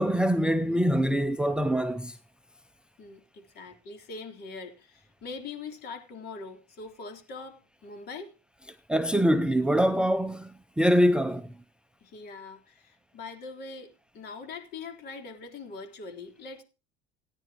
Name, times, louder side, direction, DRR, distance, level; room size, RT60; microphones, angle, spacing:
voice 1, 0.0-2.2 8.9-11.5, equal, 5° right, 0.5 m, -24 dB
voice 2, 3.0-8.3 12.0-16.6, left 4 dB, 50° left, 3.9 m, -42 dB
18.0 x 10.0 x 3.0 m
cardioid pair, 125°, 21 cm